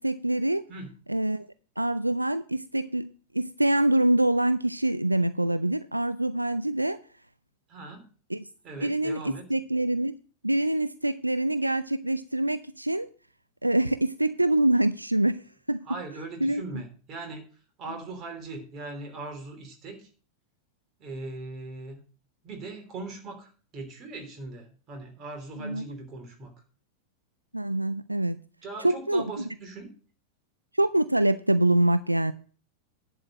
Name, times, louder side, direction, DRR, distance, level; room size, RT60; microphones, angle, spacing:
voice 1, 0.0-0.6 1.1-1.5 1.8-3.1 3.3-7.0 8.3-8.4 8.8-10.1 10.4-13.1 13.6-15.4 15.7-15.8 16.4-16.6 25.6-25.8 27.5-28.4 28.8-29.2 30.8-32.3, right 1 dB, 85° right, 0.4 m, -25 dB
voice 2, 7.7-8.0 8.6-9.5 15.8-17.5 17.8-20.1 21.0-22.0 22.4-26.5 28.6-29.9, right 3 dB, 30° right, 3.1 m, -40 dB
10.5 x 4.6 x 7.7 m
figure-of-eight pair, 90°, 0 cm